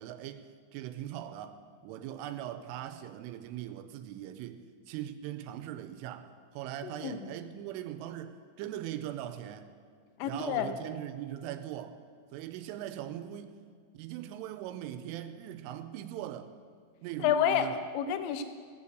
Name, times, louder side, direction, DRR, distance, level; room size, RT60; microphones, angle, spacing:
voice 1, 0.0-1.6 1.8-9.7 10.2-12.0 12.3-13.5 13.9-16.5 17.0-17.8, right 11 dB, 85° right, 3.1 m, -40 dB
voice 2, 6.8-7.4 10.2-10.7 17.2-18.4, left 9 dB, 80° left, 2.8 m, -29 dB
17.0 x 5.6 x 8.0 m
omnidirectional pair, 5.7 m